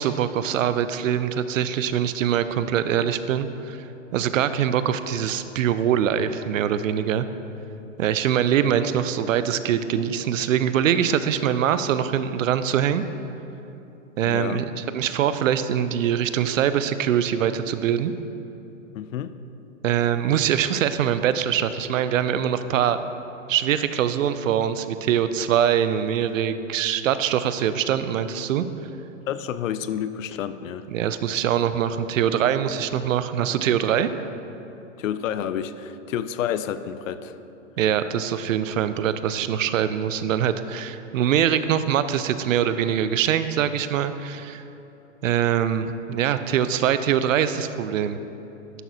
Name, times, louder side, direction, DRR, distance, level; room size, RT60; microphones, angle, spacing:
voice 1, 0.0-7.3 8.0-13.1 14.2-18.1 19.8-23.0 23.5-28.7 30.9-34.1 37.8-44.6 45.2-48.2, right 9 dB, 80° right, 12 dB, 0.5 m, -23 dB
voice 2, 14.3-14.6 18.9-19.4 29.3-30.9 35.0-37.4, left 9 dB, 80° left, 13 dB, 0.5 m, -29 dB
11.0 x 6.0 x 2.8 m, 3.0 s
hypercardioid pair, 135°, 38 cm